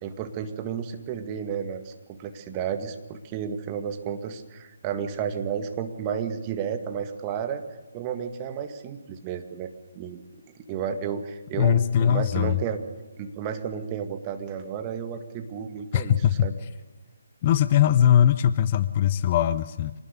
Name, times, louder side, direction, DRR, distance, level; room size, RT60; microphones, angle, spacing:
voice 1, 0.0-7.6 7.9-10.2 10.6-12.8 13.2-16.1 16.4-16.5, right 7 dB, 25° right, 7 dB, 1.9 m, -32 dB
voice 2, 11.6-12.6 15.9-16.5 17.4-19.9, left 10 dB, 35° left, 14 dB, 0.7 m, -21 dB
26.0 x 19.0 x 6.9 m, 1.2 s
figure-of-eight pair, 145°, 0 cm